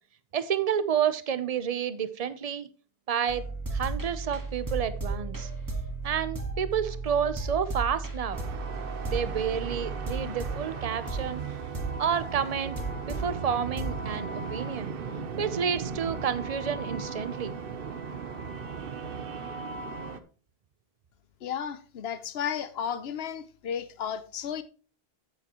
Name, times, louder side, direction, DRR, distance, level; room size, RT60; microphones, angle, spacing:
voice 1, 0.3-2.7 3.1-3.4 3.7-5.5 6.0-8.4 9.0-11.4 12.0-14.9 15.4-17.5, right 8 dB, 40° right, 0.8 m, -30 dB
sound 1, 3.3-13.3 13.8-14.2, right 3 dB, 20° right, 1.6 m, -34 dB
sound 2, 8.3-20.2, right 5 dB, 65° right, 1.0 m, -37 dB
voice 2, 21.4-24.6, left 8 dB, 80° left, 1.0 m, -33 dB
9.1 x 8.6 x 3.0 m
omnidirectional pair, 1.0 m